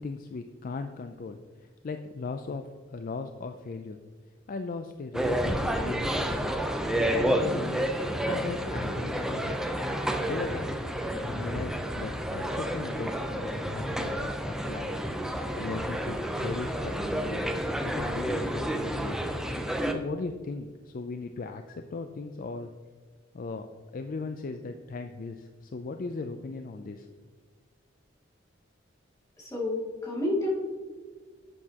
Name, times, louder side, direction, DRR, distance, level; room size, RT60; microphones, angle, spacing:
voice 1, 0.0-4.0 4.5-6.6 6.9-10.7 11.2-14.9 15.3-17.5 17.8-19.2 19.9-22.7 23.3-23.7 23.9-27.1, left 3 dB, 45° left, 7 dB, 0.4 m, -38 dB
sound 1, 5.1-19.9, equal, 5° right, 0.6 m, -30 dB
voice 2, 29.4-30.5, left 1 dB, 15° left, -4 dB, 2.4 m, -29 dB
11.0 x 7.8 x 2.9 m, 1.5 s
head